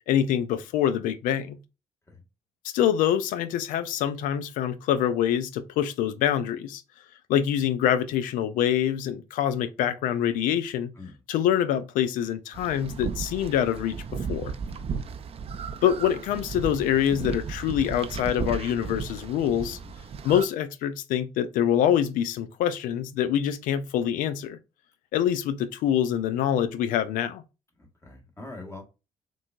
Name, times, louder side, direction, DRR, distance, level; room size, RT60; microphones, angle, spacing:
voice 1, 0.1-1.6 2.6-6.8 7.3-10.9 11.3-14.0 14.3-14.5 15.8-19.8 20.2-24.6 25.1-27.4, left 10 dB, 70° left, 0.4 m, -25 dB
sound 1, 12.5-20.5, right 6 dB, 45° right, 0.4 m, -35 dB
voice 2, 14.6-15.1 19.6-19.9 27.8-28.8, left 2 dB, 20° left, 1.3 m, -44 dB
3.7 x 2.3 x 2.4 m
hypercardioid pair, 55°, 14 cm